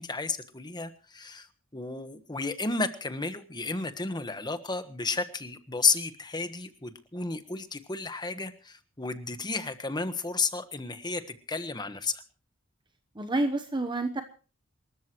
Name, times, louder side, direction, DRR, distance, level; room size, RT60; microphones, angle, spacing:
voice 1, 0.0-1.5 1.7-12.2, left 4 dB, 20° left, 10 dB, 1.3 m, -32 dB
voice 2, 13.1-14.2, right 2 dB, 25° right, 6 dB, 1.0 m, -28 dB
27.5 x 14.0 x 3.1 m, 0.39 s
head